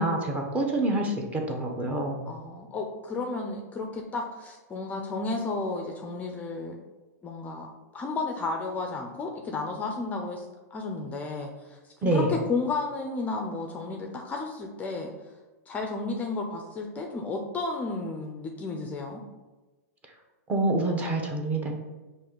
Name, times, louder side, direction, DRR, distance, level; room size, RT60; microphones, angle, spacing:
voice 1, 0.0-2.3 12.0-12.3 20.5-21.7, right 2 dB, 15° right, 2 dB, 0.7 m, -26 dB
voice 2, 2.3-6.8 7.2-10.4 10.7-15.1 15.7-19.2, left 3 dB, 15° left, 2 dB, 0.4 m, -33 dB
5.3 x 2.5 x 3.7 m, 1.2 s
hypercardioid pair, 140°, 9 cm